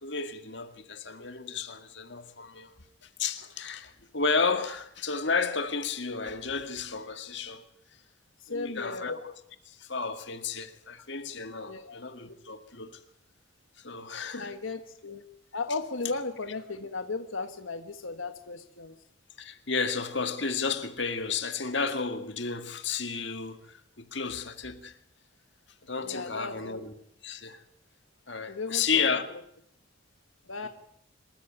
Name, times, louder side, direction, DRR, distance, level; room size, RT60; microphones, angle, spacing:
voice 1, 0.0-2.7 3.2-7.6 8.5-9.3 9.7-13.0 13.8-14.6 19.4-23.6 24.0-25.0 25.9-26.9 27.2-27.6 28.3-29.3 30.6-30.7, left 5 dB, 60° left, 2.0 m, -32 dB
voice 2, 8.4-9.2 11.7-12.0 14.4-15.2 15.5-18.9 26.0-26.7 28.5-29.0 30.5-30.7, left 3 dB, 85° left, 1.5 m, -36 dB
26.0 x 14.0 x 9.3 m
head